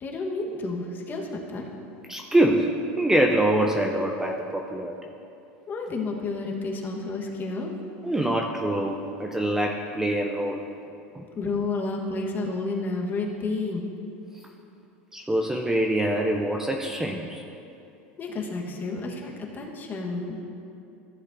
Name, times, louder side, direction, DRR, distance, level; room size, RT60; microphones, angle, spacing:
voice 1, 0.0-1.7 5.7-7.7 11.4-13.9 18.2-20.4, left 3 dB, 30° left, 0 dB, 1.3 m, -31 dB
voice 2, 2.1-5.0 8.0-10.7 11.1-11.2 14.3-14.4 15.1-17.4, right 1 dB, 5° right, 1 dB, 0.6 m, -25 dB
14.5 x 7.2 x 2.6 m, 2.7 s
supercardioid pair, 115°, 6 cm